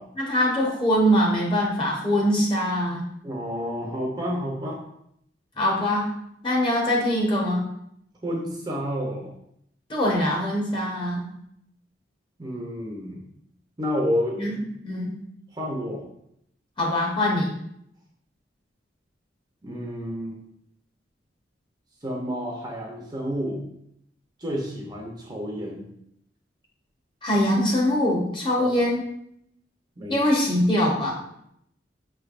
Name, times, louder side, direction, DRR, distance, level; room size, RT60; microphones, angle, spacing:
voice 1, 0.2-3.0 5.6-6.1 6.4-7.6 9.9-11.3 14.4-15.2 16.8-17.5 27.2-29.0 30.1-31.1, equal, 25° left, -3 dB, 0.9 m, -23 dB
voice 2, 3.2-4.8 8.2-9.3 12.4-13.2 13.8-14.6 15.5-16.0 19.6-20.4 22.0-23.6 24.4-25.9 28.6-28.9 30.0-30.2, equal, 20° right, -1 dB, 0.6 m, -30 dB
5.9 x 3.3 x 2.4 m, 0.74 s
head